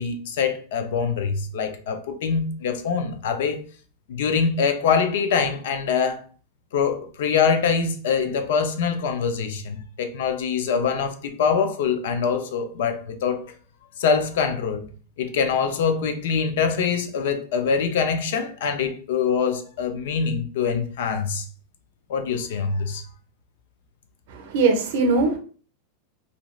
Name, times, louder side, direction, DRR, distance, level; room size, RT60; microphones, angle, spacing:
voice 1, 0.0-3.6 4.1-6.2 6.7-13.5 14.0-14.9 15.2-21.5 22.1-23.0, left 6 dB, 65° left, 0.5 m, -24 dB
voice 2, 24.3-25.4, right 3 dB, 50° right, 0.6 m, -21 dB
2.7 x 2.4 x 3.0 m
supercardioid pair, 175°, 0 cm